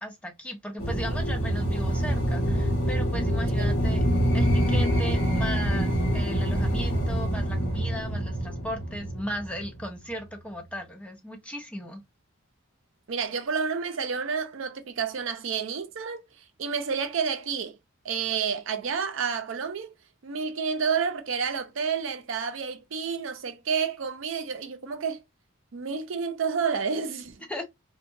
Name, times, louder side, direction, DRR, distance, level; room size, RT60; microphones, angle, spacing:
voice 1, 0.0-4.0 4.3-12.0 27.5-27.7, equal, 5° left, 0.4 m, -36 dB
sound 1, 0.8-9.9, equal, 50° left, 0.9 m, -26 dB
voice 2, 13.1-16.2 16.6-17.8 18.0-19.9 20.2-25.2 25.7-27.4, right 6 dB, 65° right, 0.5 m, -30 dB
2.7 x 2.2 x 2.5 m
head